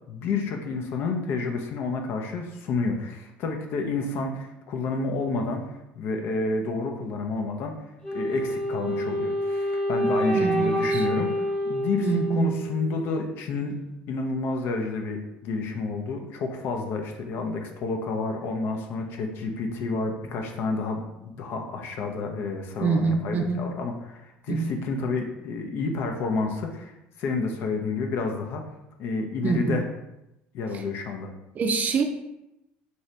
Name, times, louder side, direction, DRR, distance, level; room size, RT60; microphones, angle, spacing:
voice 1, 0.1-5.7 5.9-7.7 8.1-13.8 14.1-28.7 29.0-29.9 30.5-31.3, left 3 dB, 60° left, 4 dB, 0.6 m, -30 dB
Wind instrument woodwind instrument, 8.0-13.1, equal, 20° left, 1.2 m, -27 dB
voice 2, 10.3-11.0 12.0-12.6 22.8-23.6 24.5-24.7 29.4-29.8 31.6-32.0, right 5 dB, 40° right, 4 dB, 0.5 m, -25 dB
2.7 x 2.7 x 3.2 m, 0.90 s
supercardioid pair, 105°, 4 cm